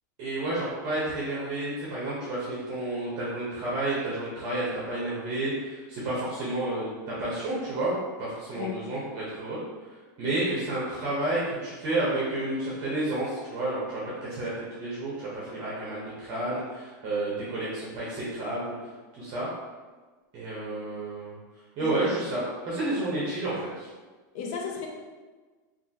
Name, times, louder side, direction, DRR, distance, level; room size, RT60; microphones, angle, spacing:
voice 1, 0.2-7.9 8.2-9.6 9.9-19.5 20.3-21.4 21.8-23.9, right 2 dB, 40° right, -7 dB, 1.0 m, -31 dB
voice 2, 24.3-24.9, left 7 dB, 55° left, 1 dB, 0.7 m, -34 dB
3.4 x 2.6 x 2.8 m, 1.3 s
supercardioid pair, 135°, 10 cm